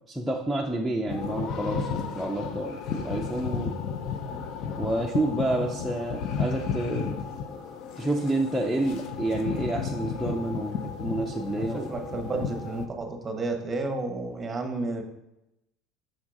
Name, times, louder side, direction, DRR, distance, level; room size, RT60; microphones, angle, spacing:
voice 1, 0.1-3.8 4.8-7.2 8.0-11.9 12.3-12.4, right 1 dB, ahead, -2 dB, 0.5 m, -29 dB
sound 1, 1.1-12.9, left 6 dB, 55° left, 0.5 m, -33 dB
voice 2, 11.6-15.0, right 2 dB, 20° right, 5 dB, 0.9 m, -32 dB
6.3 x 3.7 x 4.7 m, 0.89 s
cardioid pair, 135°, 0 cm